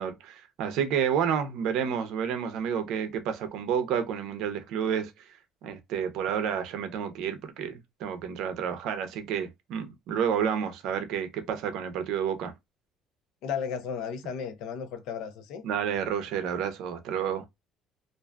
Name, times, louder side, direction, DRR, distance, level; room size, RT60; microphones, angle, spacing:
voice 1, 0.0-5.1 5.6-12.5 15.6-17.4, right 8 dB, 65° right, 0.6 m, -30 dB
voice 2, 13.4-15.7, left 7 dB, 70° left, 0.6 m, -34 dB
2.5 x 2.3 x 2.2 m
cardioid pair, 165°, 0 cm